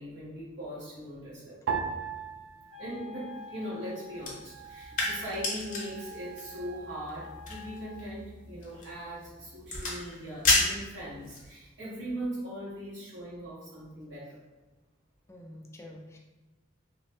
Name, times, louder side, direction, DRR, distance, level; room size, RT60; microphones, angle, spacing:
voice 1, 0.0-1.6 2.8-14.4, equal, 65° right, -9 dB, 1.2 m, -40 dB
sound 1, 1.7-4.2 4.4-5.4 6.0-6.4, right 6 dB, 80° right, 0.3 m, -38 dB
Wind instrument woodwind instrument, 2.7-8.1, left 2 dB, 30° right, 0.6 m, -48 dB
sound 2, 4.2-11.5, left 2 dB, 40° left, 0.7 m, -33 dB
voice 2, 15.3-16.2, left 1 dB, 15° left, 1 dB, 0.3 m, -48 dB
3.1 x 2.1 x 2.9 m, 1.2 s
head